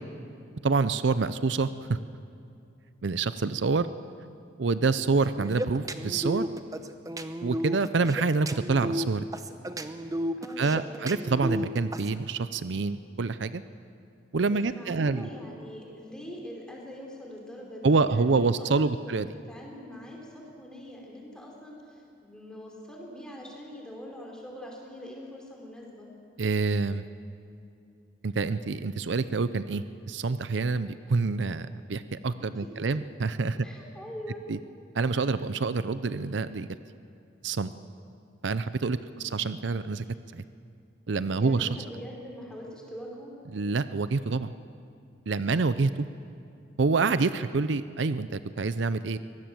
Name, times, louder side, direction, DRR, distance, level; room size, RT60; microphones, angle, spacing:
voice 1, 0.6-1.7 3.0-3.9 4.6-6.4 7.4-9.3 10.6-13.6 14.3-15.3 17.8-19.3 26.4-27.0 28.2-33.6 34.5-34.6 34.9-36.7 37.4-37.7 38.4-40.0 40.3-40.4 41.1-41.7 43.5-44.5 45.3-45.9 46.8-49.2, right 4 dB, 70° right, 13 dB, 0.6 m, -27 dB
sound 1, 5.2-12.1, equal, 20° right, 0.8 m, -33 dB
voice 2, 10.4-11.0 14.5-19.2 19.4-26.1 32.4-33.0 33.6-34.4 39.0-39.3 41.3-43.3, equal, 5° left, -2 dB, 4.4 m, -43 dB
24.0 x 18.5 x 7.7 m, 2.6 s
head